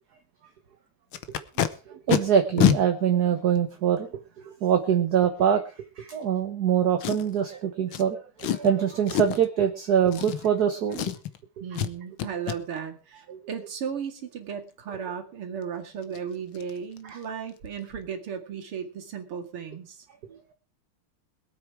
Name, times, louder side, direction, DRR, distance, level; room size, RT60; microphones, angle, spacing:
Packing tape duct tape, 1.1-1.7 2.1-2.2 2.6-2.8 3.6-3.7 7.0-7.4 7.9-8.0 8.4-8.7 9.1-9.5 10.1-10.6 10.9-11.4 11.7-11.9 12.2-12.6 15.6-15.7 16.0-16.2 16.5-16.7 17.0-17.2 17.5-17.6, left 10 dB, 70° left, 1.8 m, -26 dB
voice 1, 1.9-4.1 4.5-5.6 6.0-11.1 13.3-13.4 17.0-17.2, right 8 dB, 50° right, 6 dB, 1.5 m, -24 dB
voice 2, 11.6-20.0, right 7 dB, 80° right, 4 dB, 3.1 m, -35 dB
21.5 x 8.6 x 4.8 m, 0.35 s
omnidirectional pair, 2.4 m